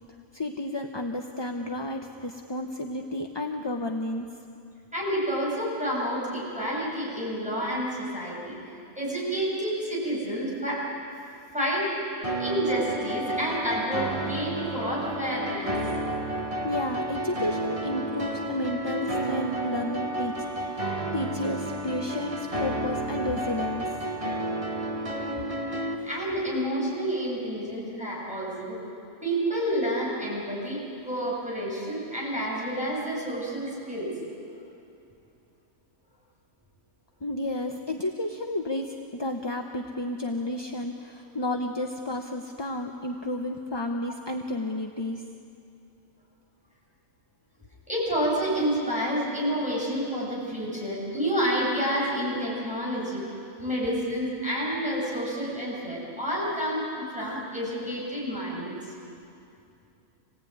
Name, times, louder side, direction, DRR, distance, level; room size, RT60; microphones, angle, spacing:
voice 1, 0.3-4.3 16.2-16.4 16.6-23.9 37.2-45.2, left 1 dB, 20° left, 3 dB, 0.8 m, -32 dB
voice 2, 4.9-8.6 8.9-10.8 11.5-11.9 12.4-15.8 26.0-28.8 29.2-34.1 47.9-53.2 53.6-58.9, equal, 5° right, -6 dB, 7.6 m, -29 dB
sound 1, 12.2-25.9, right 1 dB, 25° right, 1.5 m, -31 dB
26.5 x 18.5 x 9.4 m, 2.6 s
omnidirectional pair, 1.5 m